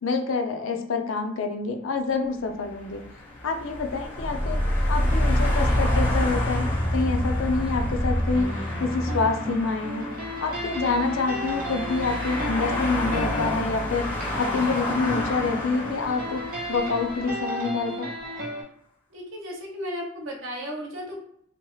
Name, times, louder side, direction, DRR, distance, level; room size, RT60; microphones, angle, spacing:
voice 1, 0.0-3.0 3.4-4.6 4.9-8.5 8.8-10.1 10.4-14.1 14.4-16.4 16.7-18.1, left 4 dB, 80° left, 5 dB, 0.5 m, -27 dB
sound 1, 2.5-17.9, left 1 dB, 10° left, 0.9 m, -31 dB
sound 2, 4.1-9.2, equal, 65° left, 1.2 m, -26 dB
sound 3, 8.3-18.6, right 1 dB, 45° right, 0.7 m, -35 dB
voice 2, 19.1-21.2, equal, 80° right, 0 dB, 0.8 m, -34 dB
2.9 x 2.3 x 3.0 m, 0.72 s
head